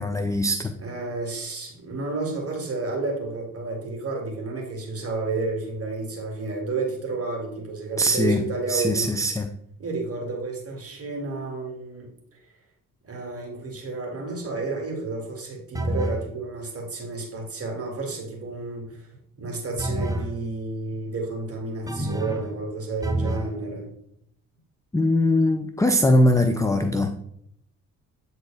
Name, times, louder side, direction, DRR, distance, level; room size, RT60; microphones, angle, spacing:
voice 1, 0.0-0.7 8.0-8.4 8.7-9.5 24.9-27.1, left 1 dB, 10° left, 6 dB, 0.4 m, -21 dB
voice 2, 0.8-9.1 9.8-12.4 13.0-19.1 19.4-23.9, right 3 dB, 35° right, 0 dB, 2.2 m, -31 dB
sound 1, 15.7-16.3 19.8-20.3 21.9-22.5 23.0-23.5, right 1 dB, 10° right, 0.9 m, -27 dB
8.1 x 4.0 x 3.4 m, 0.73 s
figure-of-eight pair, 45°, 42 cm